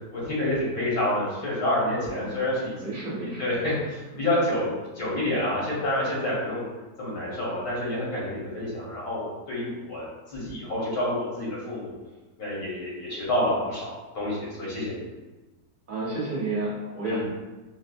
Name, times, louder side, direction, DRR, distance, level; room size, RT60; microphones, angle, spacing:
voice 1, 0.1-2.7 3.2-6.6 7.0-10.1 10.3-11.9 12.4-15.0 17.1-17.2, left 1 dB, 80° left, -7 dB, 1.8 m, -28 dB
voice 2, 2.8-3.5 15.9-17.3, right 2 dB, 35° right, -7 dB, 1.1 m, -31 dB
4.4 x 2.0 x 2.5 m, 1.2 s
omnidirectional pair, 1.6 m